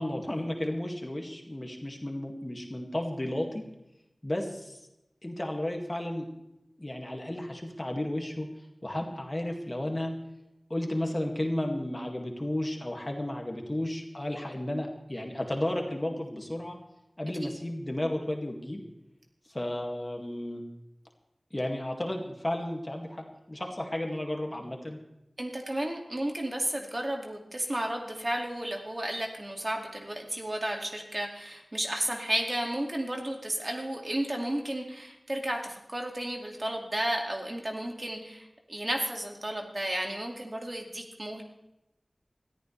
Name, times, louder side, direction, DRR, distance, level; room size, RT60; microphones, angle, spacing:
voice 1, 0.0-3.6 4.2-4.8 5.2-6.3 6.8-8.5 8.8-10.1 10.7-16.8 17.2-18.8 19.5-20.6 21.5-25.0, left 1 dB, 30° left, 2 dB, 2.1 m, -33 dB
voice 2, 25.4-41.4, right 1 dB, 40° right, 2 dB, 2.3 m, -33 dB
21.0 x 14.0 x 3.4 m, 0.89 s
wide cardioid pair, 60°, 0 cm